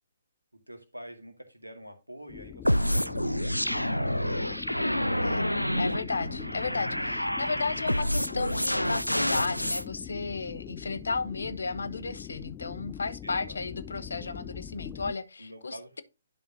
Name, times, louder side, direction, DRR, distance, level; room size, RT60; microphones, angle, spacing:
voice 1, 0.5-5.0 10.3-10.5 13.2-13.6 15.4-16.0, right 1 dB, 85° right, 2.1 m, -47 dB
sound 1, 2.3-15.1, left 10 dB, 15° left, 0.4 m, -43 dB
sound 2, 2.6-9.8, equal, 90° left, 0.3 m, -28 dB
voice 2, 5.1-5.5 5.8-16.0, left 4 dB, 65° left, 0.9 m, -34 dB
11.0 x 5.5 x 2.7 m
figure-of-eight pair, 130°, 0 cm